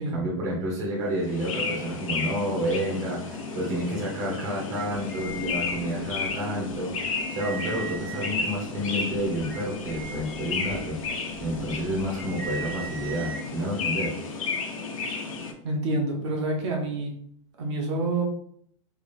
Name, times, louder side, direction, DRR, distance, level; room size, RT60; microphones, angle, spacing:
voice 1, 0.1-11.0 11.4-14.2, equal, 20° right, -4 dB, 0.8 m, -30 dB
sound 1, 1.2-15.5, left 4 dB, 90° left, 1.0 m, -33 dB
sound 2, 4.7-6.3 6.7-6.8 7.0-8.6 9.1-13.5, right 3 dB, 10° left, 0.6 m, -39 dB
voice 2, 15.6-17.1 17.6-18.2, right 2 dB, 60° right, 0 dB, 1.1 m, -27 dB
3.4 x 2.3 x 4.1 m, 0.63 s
supercardioid pair, 175°, 17 cm